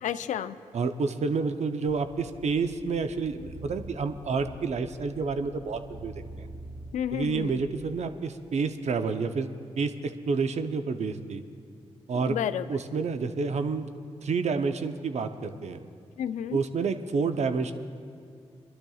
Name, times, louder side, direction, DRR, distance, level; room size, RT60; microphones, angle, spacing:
voice 1, 0.0-0.6 6.9-7.6 12.1-12.7 16.2-16.6, left 9 dB, 80° left, 12 dB, 0.5 m, -31 dB
voice 2, 0.7-6.5 7.1-11.4 12.1-12.4 12.7-13.9 14.2-15.8 16.5-17.7, right 4 dB, 65° right, 8 dB, 0.7 m, -29 dB
sound 1, 1.9-7.9, right 1 dB, 35° right, 4.2 m, -46 dB
29.5 x 12.0 x 2.4 m, 2.4 s
supercardioid pair, 45°, 12 cm